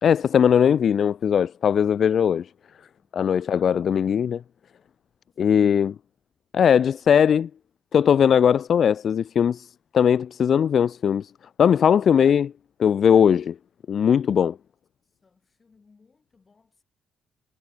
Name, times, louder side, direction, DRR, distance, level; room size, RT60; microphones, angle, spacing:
voice 1, 0.0-2.5 3.1-4.4 5.4-5.9 6.5-7.5 7.9-9.7 9.9-11.3 11.6-12.5 12.8-13.5 13.9-14.6, left 8 dB, 55° left, 0.3 m, -19 dB
voice 2, 3.0-3.7 5.4-5.7 12.0-12.3 15.2-16.8, left 4 dB, 30° left, 7.9 m, -61 dB
cardioid pair, 90°, 0 cm